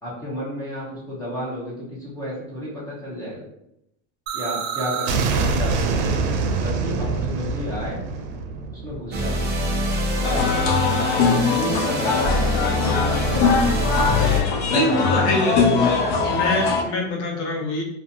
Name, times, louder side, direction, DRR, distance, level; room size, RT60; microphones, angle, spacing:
voice 1, 0.0-3.4 4.3-5.1 5.3-6.1 6.4-8.0 8.7-9.4 10.1-10.5 10.9-11.2 11.5-13.5 14.7-15.2 15.8-15.9, equal, 10° left, -7 dB, 0.7 m, -32 dB
sound 1, 4.3-10.0, right 4 dB, 85° right, 0.5 m, -25 dB
sound 2, 9.1-14.4, left 1 dB, 30° right, 0.5 m, -24 dB
sound 3, 10.2-16.8, left 5 dB, 55° left, 0.5 m, -21 dB
voice 2, 14.7-16.0 16.3-17.8, left 1 dB, 85° left, 0 dB, 0.9 m, -24 dB
2.4 x 2.4 x 2.7 m, 0.81 s
supercardioid pair, 145°, 33 cm